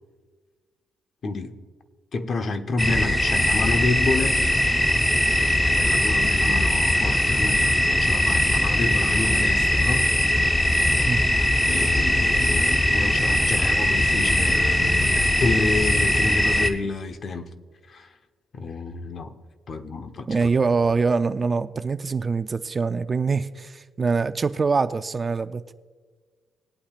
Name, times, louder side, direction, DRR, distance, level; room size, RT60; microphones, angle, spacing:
voice 1, 1.2-1.6 2.1-4.5 5.4-10.1 11.6-17.5 17.9-18.1 18.5-19.3 19.7-20.5, left 3 dB, 50° left, 0.9 m, -29 dB
sound 1, 2.8-16.7, left 1 dB, 10° left, 0.9 m, -21 dB
voice 2, 20.3-25.7, right 4 dB, 30° right, 0.5 m, -24 dB
20.0 x 8.6 x 2.5 m
cardioid pair, 90°, 0 cm